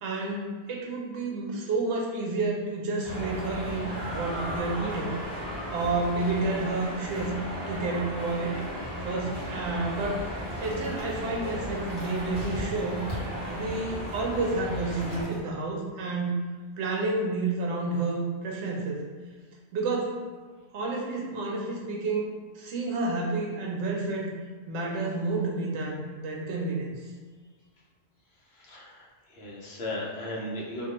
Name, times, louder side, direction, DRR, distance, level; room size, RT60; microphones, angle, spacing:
voice 1, 0.0-5.1 5.7-7.4 7.7-8.5 9.0-10.2 10.6-13.0 13.5-16.4 16.8-19.0 19.7-20.2 20.7-22.3 22.5-24.3 24.7-26.9, right 3 dB, 80° right, -2 dB, 0.9 m, -30 dB
sound 1, 3.0-15.2, equal, 35° right, 0.9 m, -35 dB
sound 2, 9.6-15.4, equal, 20° left, 0.6 m, -43 dB
voice 2, 28.3-30.9, left 1 dB, 65° left, -5 dB, 0.9 m, -37 dB
2.4 x 2.2 x 2.8 m, 1.5 s
omnidirectional pair, 1.2 m